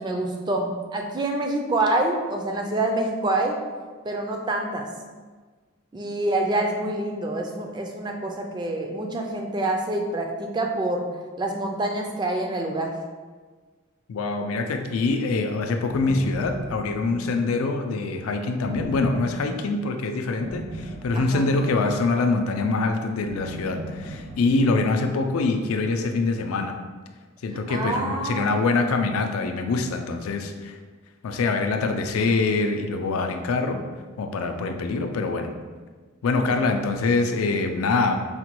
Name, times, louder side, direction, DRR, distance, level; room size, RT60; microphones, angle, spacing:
voice 1, 0.0-3.5 4.0-4.9 5.9-11.0 11.4-13.0 17.1-17.3 19.3-19.6 21.1-21.5 27.4-28.6 34.4-34.8, right 2 dB, 20° right, 2 dB, 0.3 m, -27 dB
voice 2, 14.1-26.8 27.4-30.7 31.2-33.8 34.2-35.5 36.2-38.2, left 3 dB, 85° left, 5 dB, 0.4 m, -24 dB
sound 1, 15.8-17.3 18.6-19.6 20.4-21.9 23.2-24.7, right 1 dB, 70° right, 0.9 m, -38 dB
4.9 x 2.2 x 2.9 m, 1.4 s
head